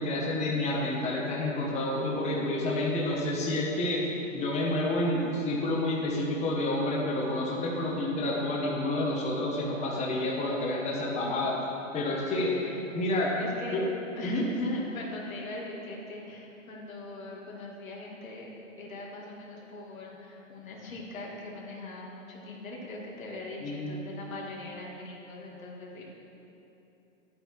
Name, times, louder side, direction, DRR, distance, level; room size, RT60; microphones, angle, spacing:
voice 1, 0.0-4.0 4.3-11.6 11.9-12.6 12.9-13.4 13.7-13.8 14.2-14.4 23.6-23.9, left 1 dB, 15° left, -3 dB, 1.3 m, -29 dB
voice 2, 13.4-13.9 14.2-18.5 18.8-26.0, left 1 dB, 85° left, -3 dB, 2.5 m, -40 dB
10.5 x 8.5 x 4.6 m, 3.0 s
hypercardioid pair, 145°, 40 cm